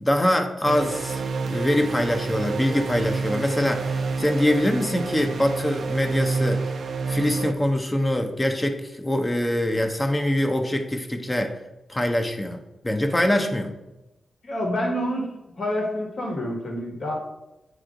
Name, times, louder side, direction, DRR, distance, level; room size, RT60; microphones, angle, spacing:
voice 1, 0.0-6.7 7.1-11.6 11.9-13.7, left 1 dB, 20° left, 4 dB, 0.8 m, -24 dB
sound 1, 0.6-7.5, right 4 dB, 70° right, 0.5 m, -28 dB
voice 2, 14.4-15.3 15.6-17.1, equal, 55° left, -1 dB, 1.6 m, -27 dB
9.0 x 3.2 x 3.8 m, 0.98 s
cardioid pair, 60°, 0 cm